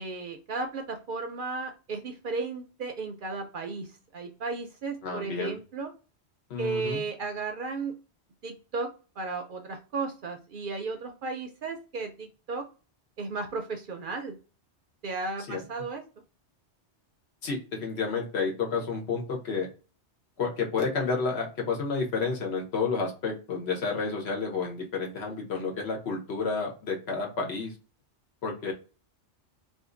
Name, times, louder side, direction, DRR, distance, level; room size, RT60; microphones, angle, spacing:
voice 1, 0.0-5.9 6.6-7.9 8.4-8.9 9.2-12.6 13.2-14.4 15.0-16.0, right 4 dB, 60° right, 5 dB, 0.6 m, -34 dB
voice 2, 5.0-5.5 6.5-7.0 15.5-15.8 17.4-19.7 20.4-27.7 28.4-28.7, left 4 dB, 70° left, 0 dB, 1.1 m, -30 dB
2.6 x 2.5 x 3.7 m, 0.34 s
omnidirectional pair, 1.2 m